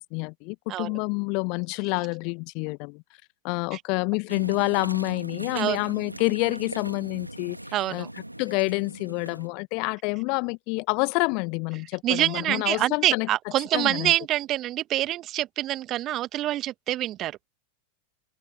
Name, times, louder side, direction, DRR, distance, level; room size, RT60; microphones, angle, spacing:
voice 1, 0.0-3.0 3.4-7.6 7.9-8.1 8.4-13.3 13.7-14.1, left 33 dB, 45° left, 1.4 m, -28 dB
sound 1, 4.3-9.5, right 1 dB, 85° right, 2.7 m, -39 dB
voice 2, 7.7-8.1 12.0-17.5, right 14 dB, 35° right, 1.6 m, -26 dB
figure-of-eight pair, 90°, 0 cm